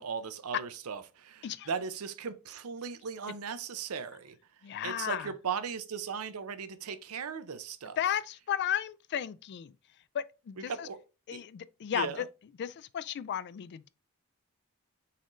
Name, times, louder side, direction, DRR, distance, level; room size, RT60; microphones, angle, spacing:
voice 1, 0.0-4.4 4.8-8.0 10.7-11.0 11.3-11.4 11.9-12.2, right 6 dB, 75° right, 0.5 m, -37 dB
voice 2, 4.6-5.3 8.0-9.7 10.1-10.9 11.3-12.3 12.6-13.9, left 10 dB, 50° left, 0.3 m, -34 dB
4.2 x 3.8 x 3.0 m
head